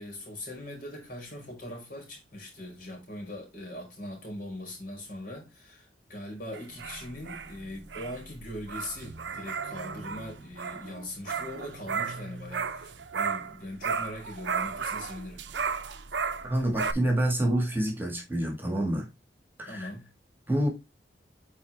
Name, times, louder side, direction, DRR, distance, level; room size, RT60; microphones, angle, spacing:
voice 1, 0.0-15.4 19.7-20.1, left 1 dB, 50° left, 4.0 m, -41 dB
sound 1, 6.5-13.6 13.8-16.9, right 5 dB, 85° right, 0.7 m, -34 dB
voice 2, 16.4-19.1 19.6-19.9 20.5-20.7, right 1 dB, 10° right, 1.8 m, -27 dB
8.8 x 4.1 x 3.5 m
head